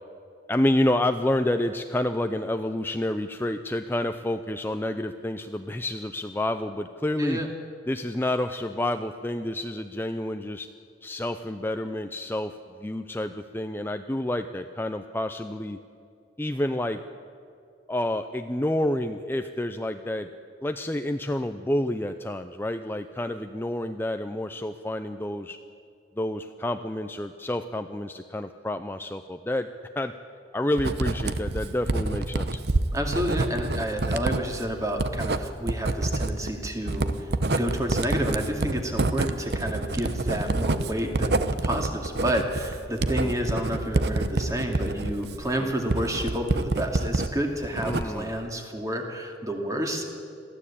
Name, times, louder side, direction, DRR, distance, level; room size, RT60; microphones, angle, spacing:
voice 1, 0.5-7.4 7.9-10.7 11.0-12.6 12.8-15.8 16.4-17.0 17.9-20.3 20.6-25.6 26.2-29.7 29.9-30.1 30.5-32.6 43.2-43.3 45.6-45.7 47.7-48.3, left 1 dB, 10° left, 7 dB, 0.5 m, -29 dB
Writing, 30.8-47.3 47.6-48.3, right 2 dB, 65° right, 0.9 m, -27 dB
voice 2, 32.9-50.1, equal, 20° right, 3 dB, 2.4 m, -30 dB
22.5 x 15.0 x 8.6 m, 2.4 s
head